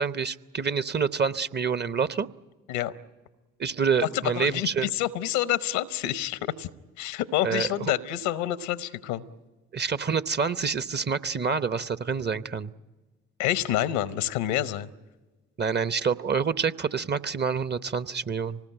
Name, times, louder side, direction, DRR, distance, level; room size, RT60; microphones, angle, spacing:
voice 1, 0.0-2.3 3.6-4.9 7.4-7.7 9.7-12.7 15.6-18.6, right 6 dB, 30° right, 14 dB, 0.8 m, -27 dB
voice 2, 4.0-6.7 7.0-9.2 13.4-14.9, left 13 dB, 80° left, 15 dB, 0.9 m, -28 dB
25.0 x 19.5 x 9.0 m, 1.2 s
hypercardioid pair, 45°, 34 cm